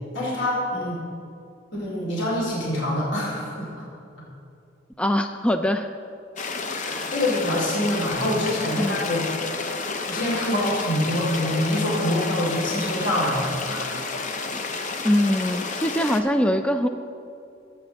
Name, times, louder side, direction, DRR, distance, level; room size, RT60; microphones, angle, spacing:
voice 1, 0.1-1.0 1.7-3.9 4.2-4.3 6.8-9.3 9.6-13.9, left 1 dB, 60° left, -4 dB, 2.7 m, -25 dB
voice 2, 5.0-5.9 8.8-9.0 15.0-16.9, equal, 5° left, 7 dB, 0.3 m, -22 dB
sound 1, 6.4-16.2, left 4 dB, 40° left, 0.7 m, -31 dB
18.5 x 8.2 x 3.5 m, 2.6 s
head